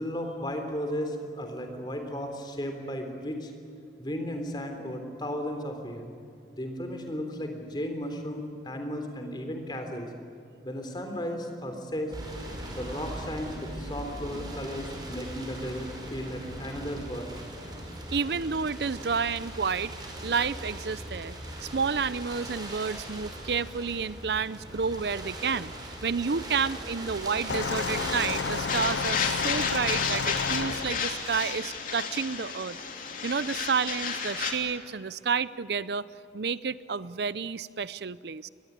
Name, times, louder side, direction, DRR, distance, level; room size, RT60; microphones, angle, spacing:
voice 1, 0.0-3.5 4.0-6.1 6.5-10.1 10.6-12.1 12.7-17.4, equal, 25° left, 5 dB, 3.6 m, -35 dB
sound 1, 12.1-31.0, right 1 dB, 25° right, 5.2 m, -40 dB
voice 2, 18.1-19.9 20.2-32.8 33.2-36.0 36.3-38.5, right 5 dB, 65° right, 17 dB, 0.6 m, -30 dB
sound 2, 27.5-31.6 32.5-32.6, left 6 dB, 85° left, 0.6 m, -32 dB
sound 3, 28.7-34.5, left 6 dB, 50° left, 3.0 m, -32 dB
24.0 x 21.0 x 9.6 m, 2.5 s
head